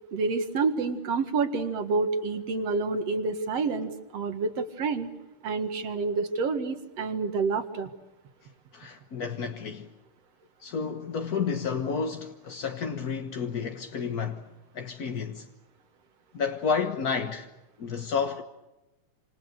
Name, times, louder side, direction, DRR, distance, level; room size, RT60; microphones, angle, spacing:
voice 1, 0.1-5.1 5.4-7.9, right 4 dB, 55° right, 2.7 m, -28 dB
voice 2, 8.7-9.9 10.6-14.5 14.7-15.5 16.3-17.5 17.8-18.4, left 6 dB, 50° left, 1.1 m, -31 dB
28.0 x 28.0 x 6.8 m
omnidirectional pair, 3.6 m